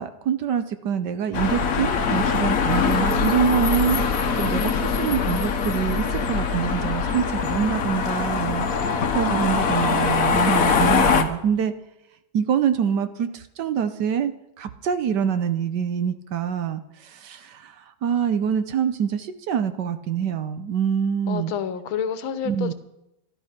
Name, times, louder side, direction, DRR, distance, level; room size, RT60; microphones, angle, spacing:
voice 1, 0.0-4.0 4.4-11.7 12.3-14.3 14.6-21.5 22.4-22.7, right 8 dB, 65° right, 11 dB, 1.3 m, -25 dB
sound 1, 1.3-11.2, left 5 dB, 50° left, 1.3 m, -22 dB
voice 2, 21.3-22.7, left 7 dB, 85° left, 12 dB, 1.8 m, -28 dB
13.0 x 12.5 x 5.8 m, 0.87 s
omnidirectional pair, 2.2 m